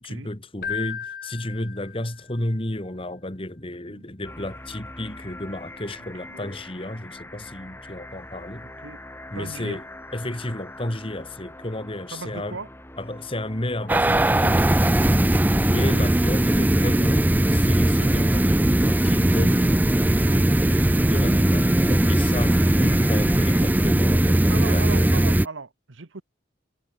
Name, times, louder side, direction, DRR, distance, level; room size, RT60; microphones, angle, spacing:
voice 1, 0.0-8.7 9.3-9.8 10.1-12.6 13.0-14.6 15.5-19.8 20.2-25.1, left 1 dB, 30° left, 2.1 m, -32 dB
Keyboard (musical), 0.6-2.4, left 7 dB, 50° left, 2.5 m, -34 dB
sound 1, 4.2-23.6, left 1 dB, 10° left, 2.8 m, -43 dB
voice 2, 9.3-9.8 12.1-12.7 24.5-26.2, right 3 dB, 85° right, 1.3 m, -37 dB
sound 2, 13.9-25.5, right 1 dB, 10° right, 0.4 m, -19 dB
head